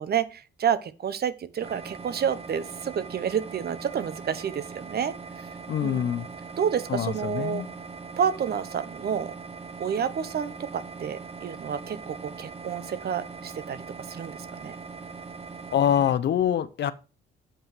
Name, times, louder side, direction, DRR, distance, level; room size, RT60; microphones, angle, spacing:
voice 1, 0.0-5.1 5.8-6.0 6.6-7.6 8.2-9.3 9.8-13.8 14.1-14.8, right 8 dB, 55° right, 1.1 m, -29 dB
sound 1, 1.6-16.1, right 5 dB, 30° right, 1.2 m, -41 dB
voice 2, 5.7-6.3 6.9-7.7 15.7-16.9, left 9 dB, 60° left, 0.8 m, -25 dB
7.5 x 5.6 x 6.0 m
cardioid pair, 90°, 20 cm